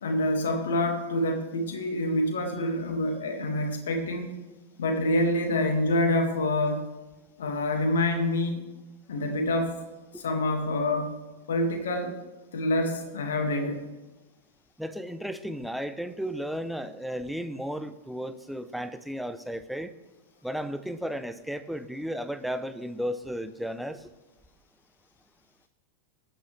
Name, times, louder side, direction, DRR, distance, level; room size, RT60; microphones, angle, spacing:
voice 1, 0.0-4.4 4.8-6.9 7.4-8.6 9.1-9.8 10.1-11.1 11.5-12.2 12.5-13.9, left 1 dB, 65° left, 4 dB, 2.0 m, -27 dB
voice 2, 14.8-19.9 20.4-24.1, equal, ahead, 11 dB, 0.7 m, -34 dB
21.0 x 9.3 x 3.3 m, 1.1 s
figure-of-eight pair, 90°, 0 cm